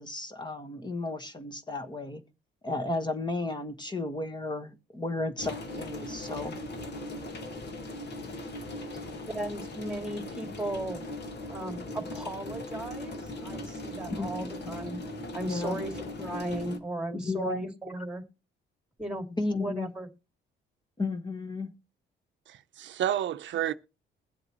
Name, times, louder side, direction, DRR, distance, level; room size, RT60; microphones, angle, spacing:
voice 1, 0.0-2.2 2.6-6.6 14.2-14.7 15.5-15.8 17.1-17.7 19.4-19.9 21.0-21.7, left 2 dB, 20° left, 1.4 m, -33 dB
sound 1, 5.4-16.8, left 1 dB, 60° left, 1.9 m, -39 dB
voice 2, 9.3-11.0 11.5-15.0 15.3-15.9 16.2-18.2 19.0-20.1, right 1 dB, 5° right, 2.2 m, -36 dB
voice 3, 22.5-23.7, right 11 dB, 70° right, 0.7 m, -30 dB
21.5 x 7.7 x 3.1 m
cardioid pair, 90°, 20 cm